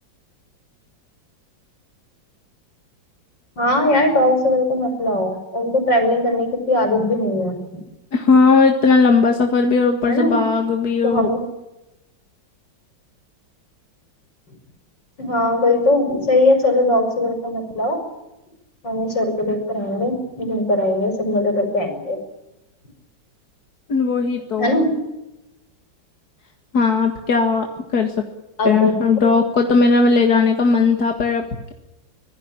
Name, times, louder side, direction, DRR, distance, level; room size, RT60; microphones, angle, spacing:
voice 1, 3.6-7.6 10.0-10.4 11.0-11.4 15.2-18.0 18.8-22.2 24.6-24.9 28.6-29.0 29.2-29.3, left 1 dB, 70° left, 6 dB, 6.0 m, -20 dB
voice 2, 8.1-11.3 23.9-24.8 26.7-27.7 27.9-28.1 28.6-31.4, left 4 dB, 55° left, 4 dB, 2.3 m, -17 dB
25.5 x 18.0 x 8.8 m, 0.96 s
omnidirectional pair, 2.1 m